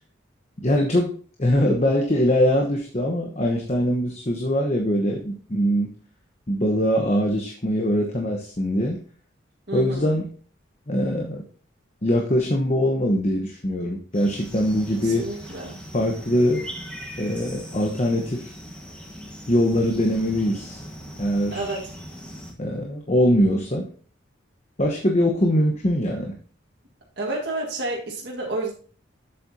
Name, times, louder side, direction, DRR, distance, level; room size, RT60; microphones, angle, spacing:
voice 1, 0.6-1.1 1.4-5.9 6.5-9.0 9.7-10.2 10.9-11.4 12.0-15.3 15.9-16.6 17.2-18.5 19.5-20.8 21.2-21.8 22.6-23.9 24.8-26.3, equal, 35° left, 2 dB, 1.0 m, -22 dB
voice 2, 9.7-10.1 15.0-15.8 21.5-21.9 27.2-28.7, right 2 dB, 55° right, -4 dB, 1.8 m, -30 dB
sound 1, 14.1-22.5, equal, 5° left, 1.5 m, -40 dB
7.8 x 7.6 x 2.8 m, 0.42 s
head